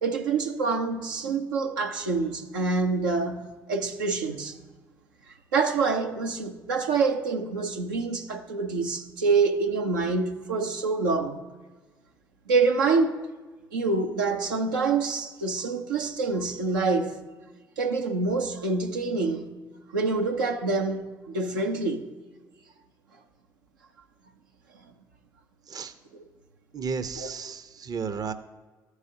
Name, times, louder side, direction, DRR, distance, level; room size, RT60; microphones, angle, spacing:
voice 1, 0.0-4.5 5.5-11.4 12.5-13.2 13.7-17.2 17.8-19.5 19.9-22.1 26.1-26.2 27.1-27.3, right 4 dB, 80° right, 0.6 m, -26 dB
voice 2, 26.7-28.3, right 5 dB, 35° right, 0.6 m, -33 dB
13.5 x 4.8 x 2.7 m
figure-of-eight pair, 45°, 11 cm